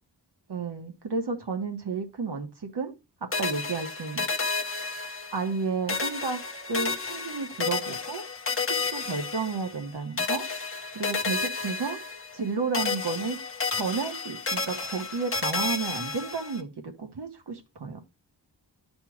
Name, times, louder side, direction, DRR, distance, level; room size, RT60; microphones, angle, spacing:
voice 1, 0.5-2.9 3.4-4.3 5.3-6.4 6.7-8.2 8.8-10.4 10.9-12.0 12.3-13.4 13.7-16.7 17.0-18.0, right 4 dB, 65° right, 4 dB, 1.4 m, -32 dB
sound 1, 3.3-5.6 5.9-9.9 10.2-12.5 12.7-16.6, left 4 dB, 30° left, 1.0 m, -31 dB
12.5 x 4.3 x 2.3 m, 0.27 s
wide cardioid pair, 75°, 43 cm